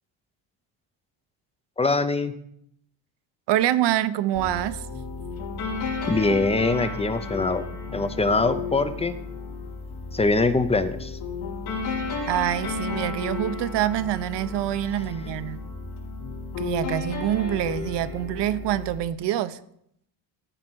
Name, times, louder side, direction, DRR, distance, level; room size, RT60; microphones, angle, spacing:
voice 1, 1.8-2.3 6.1-7.6 7.9-9.1 10.1-11.2, left 3 dB, 15° left, 11 dB, 0.5 m, -23 dB
voice 2, 3.5-4.8 12.3-15.6 16.6-19.6, right 13 dB, 65° right, 14 dB, 0.8 m, -25 dB
sound 1, 4.3-19.0, left 4 dB, 80° left, 3.3 m, -33 dB
14.0 x 4.9 x 6.2 m, 0.72 s
cardioid pair, 140°, 46 cm